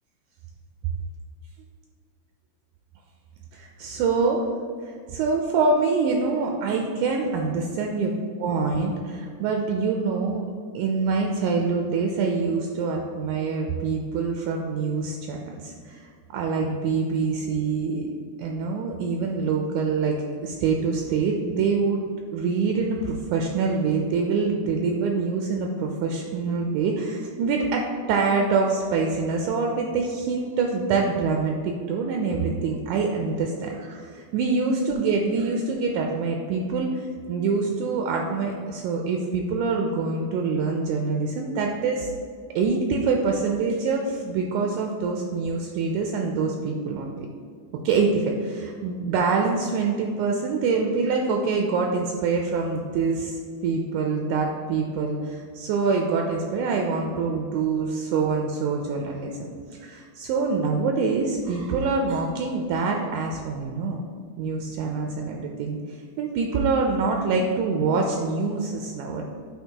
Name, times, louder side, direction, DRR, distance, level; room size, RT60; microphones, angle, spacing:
voice 1, 3.5-4.5 4.8-8.1 8.4-10.5 10.7-16.0 16.3-18.1 18.4-22.0 22.3-42.1 42.6-47.3 47.8-59.5 59.8-64.0 64.4-69.3, right 4 dB, 80° right, 1 dB, 1.9 m, -25 dB
8.8 x 3.8 x 2.8 m, 2.1 s
omnidirectional pair, 3.7 m